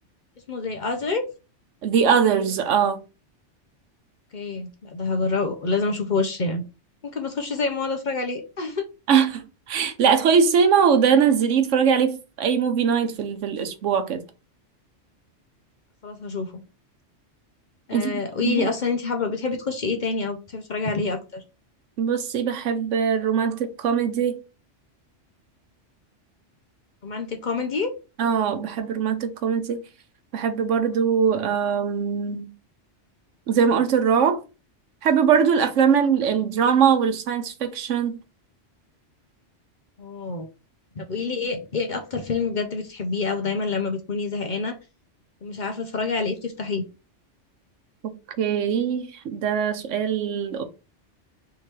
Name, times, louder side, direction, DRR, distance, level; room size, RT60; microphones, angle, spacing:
voice 1, 0.5-1.2 4.3-6.6 7.0-8.9 16.0-16.6 17.9-21.4 27.0-27.9 40.0-40.5 40.9-44.8 45.4-46.8, left 4 dB, 45° left, 0.8 m, -27 dB
voice 2, 1.8-3.0 9.1-14.2 17.9-18.7 22.0-24.4 28.2-29.8 30.3-32.5 33.5-34.4 35.0-38.2 48.0-50.6, right 7 dB, 85° right, 1.1 m, -21 dB
3.7 x 3.1 x 4.4 m
omnidirectional pair, 1.2 m